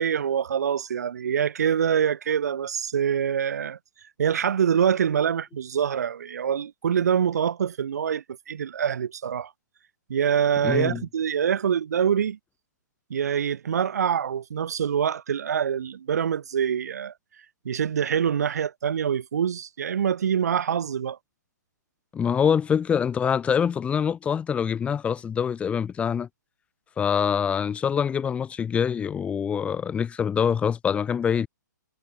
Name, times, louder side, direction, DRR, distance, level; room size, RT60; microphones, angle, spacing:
voice 1, 0.0-3.8 4.2-9.5 10.1-12.4 13.1-17.1 17.6-21.2, right 8 dB, 55° right, 7.3 m, -25 dB
voice 2, 10.6-11.0 22.1-26.3 27.0-31.5, left 7 dB, 10° left, 3.3 m, -25 dB
figure-of-eight pair, 130°, 10 cm